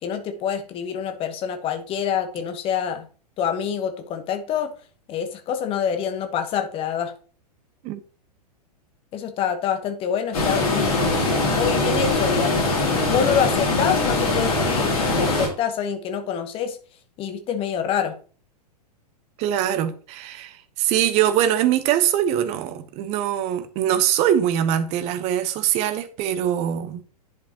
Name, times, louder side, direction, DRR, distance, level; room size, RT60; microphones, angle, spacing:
voice 1, 0.0-3.1 3.4-4.7 5.1-7.1 9.1-11.1 11.5-16.8 17.2-18.2, left 8 dB, 25° left, 1.1 m, -26 dB
sound 1, 10.3-15.5, left 2 dB, 60° left, 3.0 m, -22 dB
voice 2, 19.4-27.0, right 10 dB, 30° right, 0.9 m, -22 dB
10.5 x 5.1 x 2.9 m
figure-of-eight pair, 100°, 21 cm